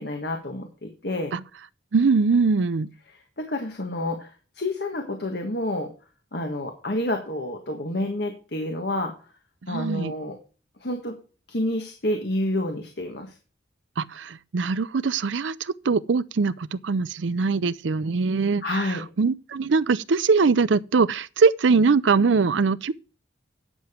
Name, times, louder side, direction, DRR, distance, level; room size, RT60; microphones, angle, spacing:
voice 1, 0.0-1.3 3.4-5.9 6.3-9.1 9.7-10.4 10.8-11.2 11.5-13.3 18.6-19.0, left 1 dB, 60° left, 1.6 m, -29 dB
voice 2, 1.9-2.9 9.7-10.1 14.0-22.9, right 4 dB, 85° right, 0.5 m, -22 dB
10.5 x 7.0 x 4.4 m
head